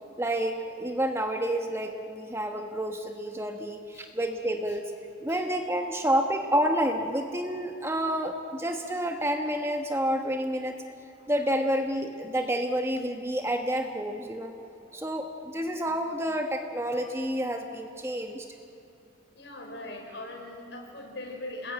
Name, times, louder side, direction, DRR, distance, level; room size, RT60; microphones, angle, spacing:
voice 1, 0.2-4.9 5.2-10.7 11.3-14.5 14.9-18.5, equal, 15° right, 4 dB, 1.2 m, -29 dB
voice 2, 19.4-21.7, left 2 dB, 65° left, 1 dB, 5.5 m, -40 dB
29.0 x 20.5 x 9.0 m, 2.6 s
head